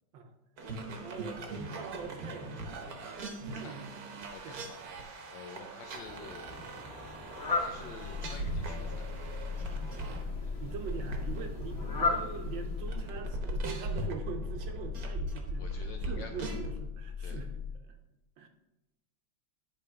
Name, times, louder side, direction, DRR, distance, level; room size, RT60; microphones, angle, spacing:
sound 1, 0.6-16.8, right 2 dB, 55° right, 1.2 m, -40 dB
voice 1, 1.0-2.6 3.4-3.9 4.4-4.6 9.9-10.3 10.6-17.7 18.4-18.5, right 6 dB, 70° right, 5 dB, 1.3 m, -43 dB
voice 2, 4.3-4.8 5.0-6.5 7.5-9.2 15.6-16.5 17.2-17.4, left 5 dB, 70° left, 4 dB, 1.2 m, -49 dB
Fowl, 5.9-13.3, left 3 dB, 40° left, 2.1 m, -38 dB
sound 2, 8.0-17.7, left 5 dB, 85° left, 0.7 m, -39 dB
10.5 x 3.5 x 4.7 m, 0.94 s
omnidirectional pair, 2.4 m